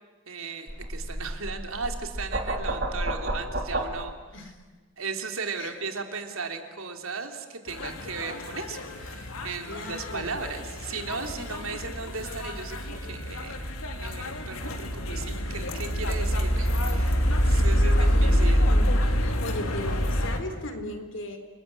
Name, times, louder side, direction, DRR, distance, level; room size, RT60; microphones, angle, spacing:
voice 1, 0.3-4.5 5.0-13.7 14.0-18.7, right 4 dB, 80° right, 5 dB, 3.1 m, -36 dB
sound 1, 0.7-3.9, right 1 dB, 50° right, 3.8 m, -31 dB
sound 2, 7.7-20.4, equal, 85° left, 3.3 m, -26 dB
voice 2, 9.7-10.4 17.9-18.9 19.2-21.4, left 1 dB, 65° left, 7 dB, 3.9 m, -37 dB
29.0 x 20.5 x 9.9 m, 1.3 s
head